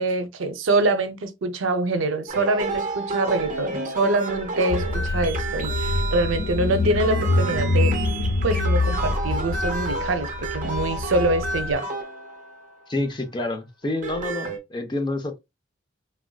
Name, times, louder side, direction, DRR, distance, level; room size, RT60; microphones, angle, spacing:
voice 1, 0.0-7.9 8.4-11.8, right 2 dB, 90° right, 0.5 m, -24 dB
sound 1, 2.3-12.8 13.8-14.6, right 3 dB, 40° right, 0.7 m, -31 dB
Car / Engine, 4.7-11.7, left 2 dB, 85° left, 0.4 m, -25 dB
voice 2, 12.9-15.4, left 2 dB, 25° left, 0.5 m, -28 dB
3.4 x 2.5 x 2.2 m
head